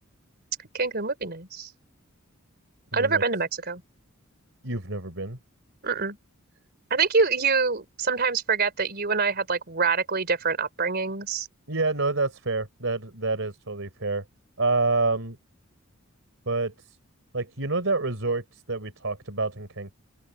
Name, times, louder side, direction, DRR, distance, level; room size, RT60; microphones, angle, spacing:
voice 1, 0.7-1.7 2.9-3.8 5.8-6.2 6.9-11.5, right 4 dB, 50° right, 3.9 m, -25 dB
voice 2, 2.9-3.2 4.6-5.4 11.7-14.2 14.6-15.4 16.5-16.7 17.3-19.9, right 3 dB, 65° right, 4.1 m, -27 dB
open air
head